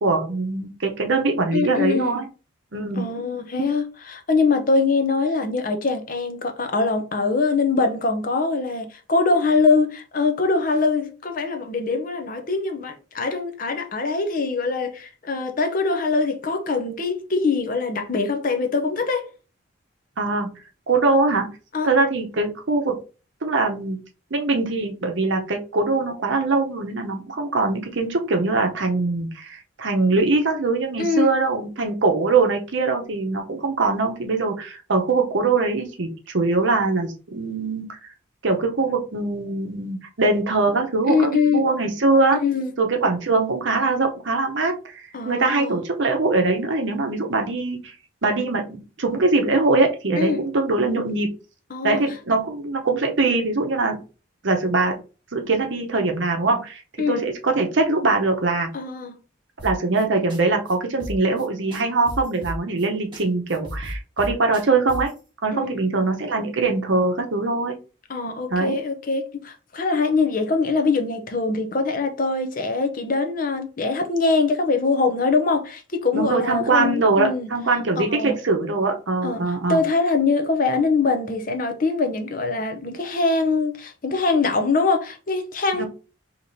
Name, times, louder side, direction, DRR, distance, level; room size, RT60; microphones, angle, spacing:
voice 1, 0.0-2.2 2.7-3.0 20.2-20.5 20.9-21.5 21.8-23.0 23.4-24.0 24.3-37.9 38.4-42.4 42.8-47.9 48.2-51.3 51.8-54.0 54.4-54.9 55.3-56.8 57.1-58.7 59.6-65.1 65.4-67.8 68.5-68.8 76.1-79.8 85.7-85.9, right 3 dB, 65° right, 0.8 m, -22 dB
voice 2, 1.5-2.2 3.0-19.3 21.7-21.9 31.0-31.3 41.1-41.6 42.4-42.7 45.1-45.8 50.2-50.4 51.7-52.0 57.0-57.2 58.7-59.1 65.5-66.0 68.1-77.5 78.0-78.3 79.2-85.9, left 4 dB, 40° left, 0.6 m, -23 dB
sound 1, 59.6-60.0 60.3-60.4 60.7-60.8 61.0-61.5 61.7-62.9 63.1-63.2 63.5-65.2, equal, 25° right, 1.4 m, -35 dB
4.8 x 2.9 x 2.7 m
head